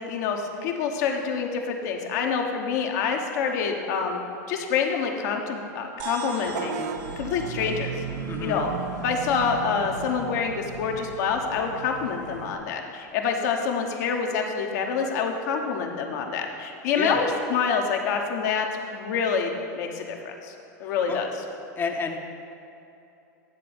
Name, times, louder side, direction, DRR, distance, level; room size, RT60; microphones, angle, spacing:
voice 1, 0.1-4.2 4.5-6.8 7.2-7.9 8.4-8.7 9.0-20.5 20.8-21.3, left 6 dB, 65° left, 2 dB, 1.0 m, -27 dB
sound 1, 6.0-10.6, right 5 dB, 50° right, 1.0 m, -42 dB
Vehicle horn car horn honking / Bus, 6.5-12.6, right 7 dB, 70° right, 0.6 m, -36 dB
voice 2, 8.3-8.6 16.9-17.2 21.1-21.2 21.8-22.2, left 5 dB, 20° left, 3 dB, 0.7 m, -29 dB
9.5 x 3.8 x 6.9 m, 2.8 s
hypercardioid pair, 100°, 10 cm